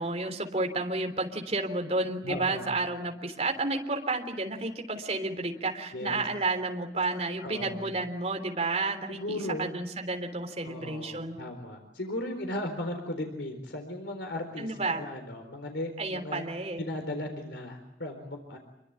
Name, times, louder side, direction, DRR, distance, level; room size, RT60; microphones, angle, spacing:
voice 1, 0.0-11.4 14.6-15.0 16.0-16.8, right 3 dB, 35° right, 4 dB, 3.6 m, -31 dB
voice 2, 2.2-2.7 5.9-6.3 7.4-7.9 9.1-9.8 10.6-16.5 16.8-18.6, left 1 dB, 90° left, 5 dB, 4.1 m, -36 dB
27.5 x 23.5 x 8.9 m, 0.85 s
head